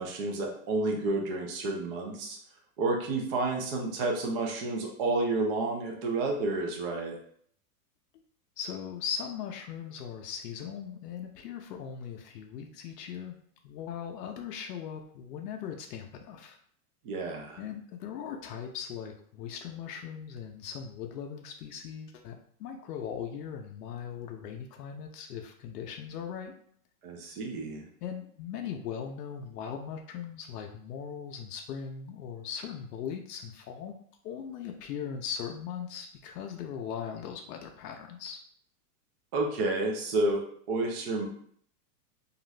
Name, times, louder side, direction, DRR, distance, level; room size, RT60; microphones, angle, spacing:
voice 1, 0.0-2.4 2.8-7.2 17.0-17.6 27.0-27.9 39.3-41.3, right 2 dB, 35° right, 0 dB, 0.5 m, -30 dB
voice 2, 8.6-13.4 13.6-16.6 17.6-26.5 28.0-34.0 34.2-38.4, left 7 dB, 80° left, 2 dB, 0.6 m, -39 dB
2.5 x 2.4 x 3.1 m, 0.62 s
supercardioid pair, 150°, 47 cm